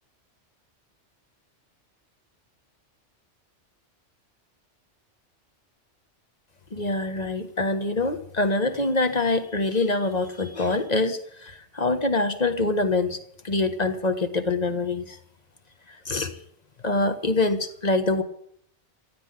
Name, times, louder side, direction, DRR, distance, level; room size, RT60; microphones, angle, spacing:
voice 1, 6.7-15.2 15.9-16.4 16.8-18.2, left 2 dB, 35° left, 8 dB, 1.5 m, -25 dB
14.5 x 8.2 x 10.0 m, 0.67 s
omnidirectional pair, 1.2 m